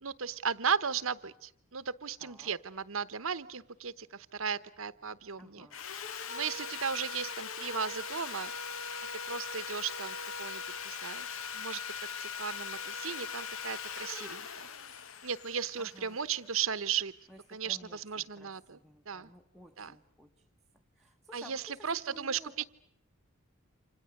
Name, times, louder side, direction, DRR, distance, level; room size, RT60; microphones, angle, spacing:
voice 1, 0.0-5.7 6.3-8.5 9.3-11.3 11.5-14.7 15.2-17.1 17.5-18.8 19.1-19.3 19.8-20.0 21.3-22.7, right 7 dB, 75° right, 1.0 m, -36 dB
voice 2, 2.2-2.6 5.4-5.8 15.8-16.2 17.3-20.5 20.7-22.7, equal, ahead, 1.0 m, -54 dB
Sawing, 5.7-16.8, left 6 dB, 75° left, 1.1 m, -40 dB
29.0 x 27.0 x 6.6 m
head